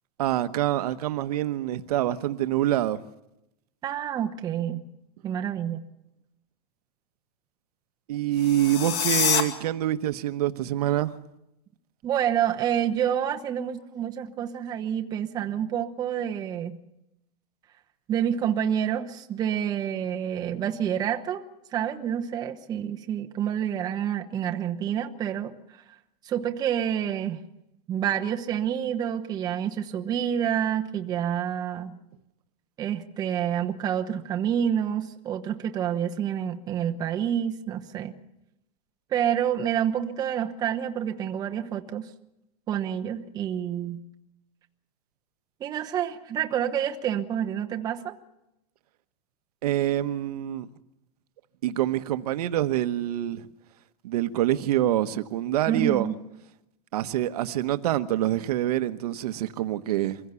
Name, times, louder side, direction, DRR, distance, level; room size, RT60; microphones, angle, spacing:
voice 1, 0.2-3.0 8.1-11.1 49.6-50.7 51.6-53.5 54.0-56.1 56.9-60.2, right 13 dB, 75° right, 1.1 m, -26 dB
voice 2, 3.8-4.8 5.2-5.8 12.0-16.8 18.1-21.4 21.7-25.5 26.2-27.4 27.9-32.0 32.8-38.1 39.1-42.1 42.7-44.0 45.6-48.2 55.7-56.2, right 9 dB, 20° right, 0.9 m, -28 dB
sound 1, 8.3-9.4, left 8 dB, 35° left, 2.1 m, -25 dB
24.0 x 16.0 x 7.0 m
supercardioid pair, 165°, 20 cm